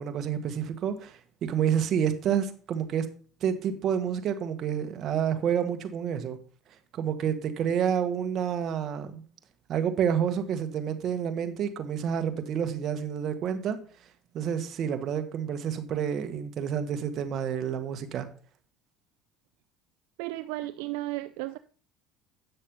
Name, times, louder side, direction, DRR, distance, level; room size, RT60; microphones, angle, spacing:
voice 1, 0.0-3.1 3.4-6.4 6.9-9.2 9.7-13.8 14.3-18.3, right 8 dB, 55° right, 8 dB, 1.6 m, -29 dB
voice 2, 20.2-21.6, right 17 dB, 80° right, 12 dB, 0.4 m, -34 dB
9.3 x 6.5 x 5.6 m, 0.41 s
supercardioid pair, 90°, 0 cm